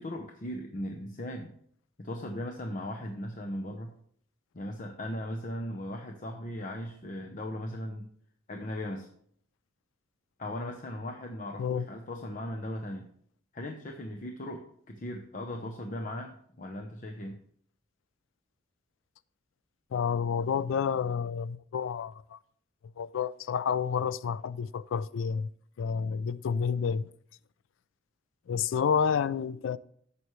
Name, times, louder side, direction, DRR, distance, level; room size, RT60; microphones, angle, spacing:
voice 1, 0.0-1.5 2.0-3.9 4.5-8.1 8.5-9.1 10.4-13.1 13.5-17.4, left 1 dB, 40° left, 0.8 m, -38 dB
voice 2, 19.9-22.4 23.0-25.5 25.8-27.1 28.5-29.8, left 6 dB, 75° left, 0.3 m, -29 dB
11.0 x 7.1 x 3.2 m
head